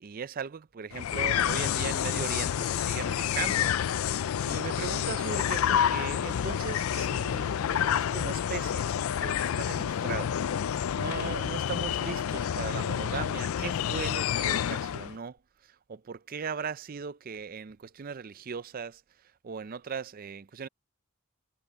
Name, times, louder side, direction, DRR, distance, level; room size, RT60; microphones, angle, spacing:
voice 1, 0.0-4.0 4.4-15.4 15.6-19.0 19.4-20.7, right 6 dB, 40° right, 0.4 m, -38 dB
sound 1, 0.9-15.2, left 9 dB, 80° left, 0.4 m, -29 dB
head